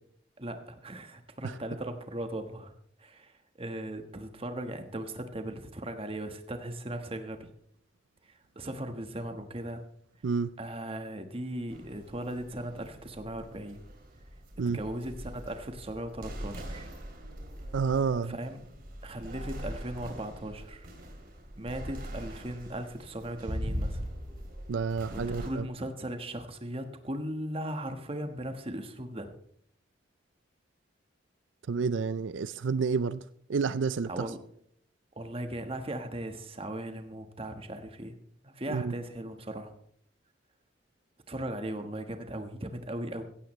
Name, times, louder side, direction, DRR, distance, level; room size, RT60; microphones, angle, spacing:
voice 1, 0.4-2.7 3.0-7.5 8.2-9.8 10.6-13.8 14.6-16.9 18.2-18.6 19.0-20.9 21.5-24.1 25.1-29.3 34.0-34.4 35.1-38.2 38.4-39.7 41.3-43.2, right 1 dB, 30° right, 1.4 m, -38 dB
sound 1, 11.7-25.5, equal, 50° right, 2.9 m, -41 dB
voice 2, 17.7-18.4 24.7-25.7 31.7-33.2 33.5-34.3 38.7-38.9, right 5 dB, 90° right, 0.5 m, -29 dB
16.0 x 15.5 x 3.2 m
head